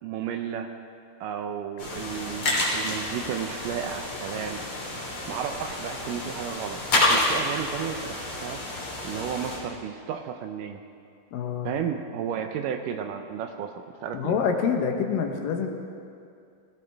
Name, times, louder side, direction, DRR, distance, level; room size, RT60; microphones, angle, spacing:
voice 1, 0.0-0.7 1.2-4.6 5.3-8.6 9.0-10.8 11.6-13.7 14.0-14.4, right 8 dB, 80° right, 6 dB, 2.1 m, -33 dB
sound 1, 1.8-9.6, left 2 dB, 35° left, 3.3 m, -29 dB
voice 2, 11.3-11.7 14.1-15.7, left 6 dB, 75° left, 3 dB, 2.7 m, -26 dB
19.5 x 16.5 x 3.4 m, 2.4 s
omnidirectional pair, 4.2 m